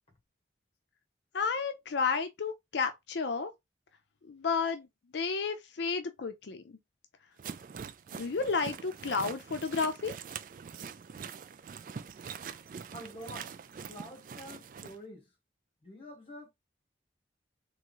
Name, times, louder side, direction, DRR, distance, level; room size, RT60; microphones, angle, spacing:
voice 1, 1.3-3.5 4.2-4.9 5.1-6.8 8.1-10.2, left 5 dB, 75° left, 0.5 m, -32 dB
sound 1, 7.4-15.0, right 6 dB, 45° right, 0.3 m, -44 dB
voice 2, 12.9-13.6 13.9-15.3 15.8-16.5, equal, 30° left, 1.4 m, -47 dB
3.7 x 3.0 x 3.0 m
head